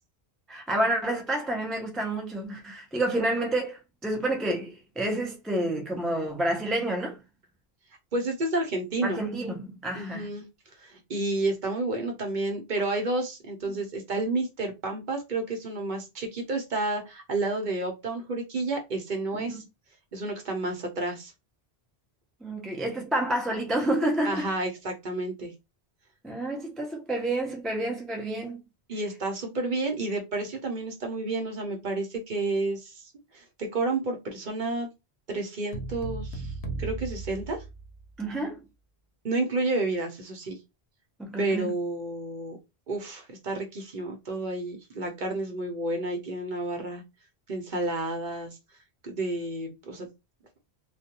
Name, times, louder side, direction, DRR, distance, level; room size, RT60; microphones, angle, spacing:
voice 1, 0.5-7.2 9.0-10.3 19.3-19.6 22.4-24.5 26.2-28.6 38.2-38.6 41.2-41.7, right 1 dB, ahead, 0.3 m, -29 dB
voice 2, 8.1-9.2 9.9-10.4 10.8-19.6 20.1-21.3 24.2-25.5 28.9-33.0 33.3-34.9 35.3-36.5 36.8-37.6 39.2-40.6 41.4-42.6 42.9-47.0 47.5-48.6 49.0-50.1, right 2 dB, 50° right, 0.8 m, -30 dB
sound 1, 35.7-38.2, right 3 dB, 85° left, 0.9 m, -36 dB
2.3 x 2.2 x 2.9 m
omnidirectional pair, 1.1 m